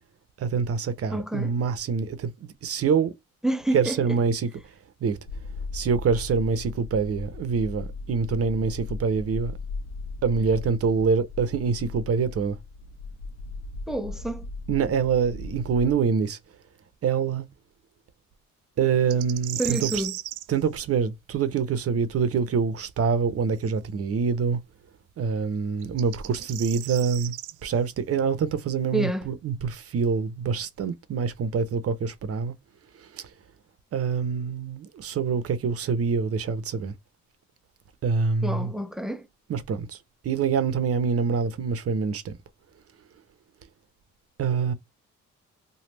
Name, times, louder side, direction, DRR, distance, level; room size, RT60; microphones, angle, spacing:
voice 1, 0.4-3.1 3.7-4.5 5.0-5.2 5.7-9.5 10.2-12.6 14.7-16.4 17.0-17.5 18.8-20.0 20.5-24.6 25.2-27.3 27.6-32.5 33.0-33.3 33.9-36.9 38.0-38.7 39.5-40.0 40.2-42.4 44.4-44.7, right 6 dB, 50° right, 0.7 m, -25 dB
voice 2, 1.1-1.5 3.4-4.0 13.9-14.5 19.6-20.1 28.9-29.3 38.4-39.3, right 1 dB, ahead, 0.4 m, -28 dB
sound 1, 5.3-16.0, left 3 dB, 65° left, 0.8 m, -37 dB
sound 2, 19.1-20.5 23.6-23.7 25.8-27.5, right 15 dB, 80° right, 0.4 m, -35 dB
3.3 x 2.3 x 3.0 m
cardioid pair, 90°, 30 cm